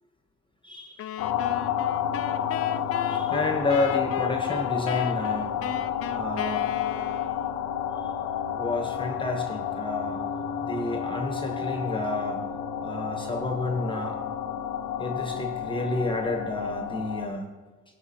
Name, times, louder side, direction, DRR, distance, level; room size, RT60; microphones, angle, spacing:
voice 1, 0.6-1.0 3.0-5.6 6.1-6.7 8.5-10.2 10.6-12.4 12.8-14.2 15.0-17.5, left 2 dB, 15° left, 4 dB, 1.2 m, -30 dB
sound 1, 1.0-7.6, left 9 dB, 50° left, 0.5 m, -36 dB
sound 2, 1.2-17.3, left 9 dB, 85° left, 0.7 m, -30 dB
15.0 x 7.4 x 2.9 m, 1.2 s
cardioid pair, 90°, 30 cm